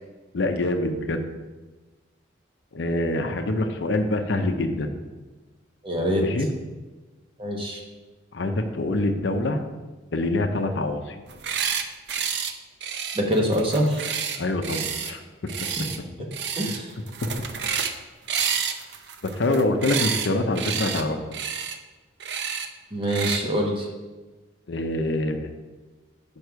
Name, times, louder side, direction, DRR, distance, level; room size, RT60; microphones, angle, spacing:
voice 1, 0.3-1.2 2.7-4.9 6.2-6.5 8.3-9.6 10.1-11.2 14.4-15.2 19.2-21.2 24.7-25.5, left 2 dB, 65° left, 6 dB, 0.6 m, -25 dB
voice 2, 5.8-6.2 7.4-7.8 13.2-14.0 16.6-16.9 22.9-23.9, equal, 25° right, 0 dB, 1.0 m, -24 dB
sound 1, 11.3-11.8 12.1-12.5 12.8-15.1 15.5-16.0 16.3-16.8 17.1-18.0 18.3-20.3 20.5-21.0 21.3-21.8 22.2-22.7 23.1-23.4, right 7 dB, 60° right, 0.5 m, -29 dB
6.6 x 5.4 x 4.6 m, 1.2 s
head